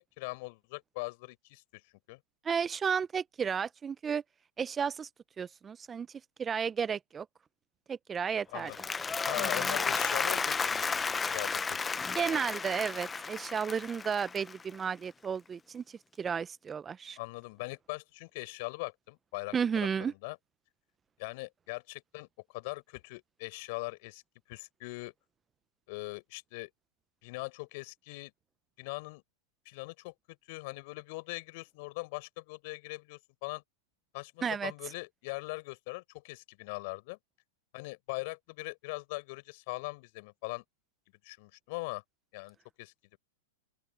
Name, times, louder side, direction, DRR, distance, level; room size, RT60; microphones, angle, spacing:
voice 1, 0.0-1.8 2.1-2.2 8.5-8.8 9.3-11.0 11.2-11.8 12.2-12.4 17.2-20.4 21.2-24.2 24.5-25.1 25.9-26.7 27.2-28.3 28.8-29.2 29.7-33.6 34.1-37.2 37.7-40.6 41.2-42.0 42.3-43.2, left 26 dB, 55° left, 5.5 m, -41 dB
voice 2, 2.4-4.2 4.6-5.1 5.4-6.1 6.4-7.3 7.9-8.7 9.4-9.7 12.1-17.2 19.5-20.1 34.4-34.7, right 6 dB, 20° right, 0.7 m, -33 dB
Applause, 8.6-14.9, left 5 dB, 15° left, 1.0 m, -33 dB
open air
hypercardioid pair, 110°, 0 cm